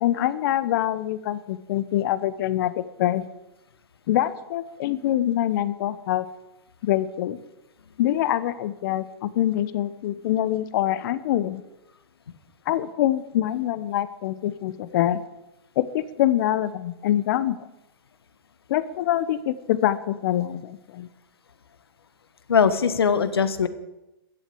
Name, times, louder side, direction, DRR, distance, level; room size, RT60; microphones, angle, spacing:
voice 1, 0.0-3.2 4.1-6.2 6.8-7.4 8.0-11.6 12.7-15.2 15.8-17.6 18.7-21.1, left 12 dB, 60° left, 15 dB, 1.0 m, -25 dB
voice 2, 22.5-23.7, left 6 dB, 85° left, 12 dB, 1.4 m, -20 dB
14.0 x 9.3 x 8.5 m, 0.97 s
hypercardioid pair, 115°, 13 cm